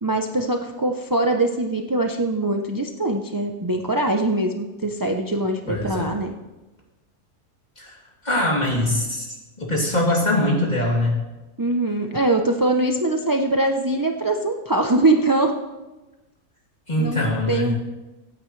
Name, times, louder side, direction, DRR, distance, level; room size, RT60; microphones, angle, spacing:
voice 1, 0.0-6.3 11.6-15.5 17.0-17.2 17.5-17.7, right 2 dB, 35° right, 4 dB, 0.3 m, -22 dB
voice 2, 5.7-6.1 7.8-7.9 8.2-11.2 16.9-17.8, left 1 dB, 25° left, -3 dB, 3.0 m, -22 dB
24.5 x 9.0 x 3.3 m, 1.1 s
omnidirectional pair, 1.6 m